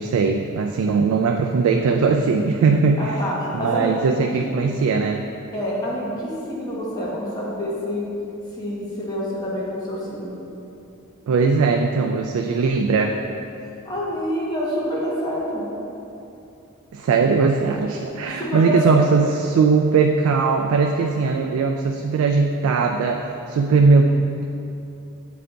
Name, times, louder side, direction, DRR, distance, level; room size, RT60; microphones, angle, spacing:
voice 1, 0.0-3.1 3.5-5.2 11.3-13.2 16.9-24.5, right 4 dB, 85° right, 4 dB, 0.3 m, -19 dB
voice 2, 3.0-4.0 5.5-8.0 8.6-10.4 13.5-13.6 13.8-15.7 18.4-19.1, equal, 20° left, -7 dB, 1.1 m, -27 dB
7.7 x 3.4 x 3.8 m, 2.8 s
head